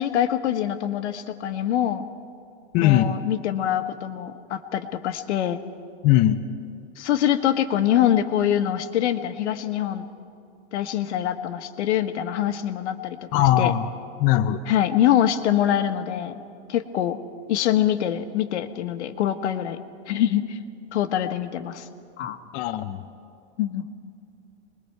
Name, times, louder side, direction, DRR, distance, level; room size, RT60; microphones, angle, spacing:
voice 1, 0.0-2.1 2.8-5.6 7.0-10.1 10.7-13.7 14.7-16.4 16.7-17.2 17.5-19.8 20.1-20.6 20.9-21.8 22.2-22.4 23.6-23.8, left 11 dB, 75° left, 9 dB, 1.4 m, -24 dB
voice 2, 2.7-3.1 6.0-6.4 13.3-13.9 14.2-14.6 22.5-23.0, left 13 dB, 25° left, 7 dB, 0.5 m, -19 dB
26.0 x 21.5 x 4.6 m, 2.5 s
supercardioid pair, 160°, 34 cm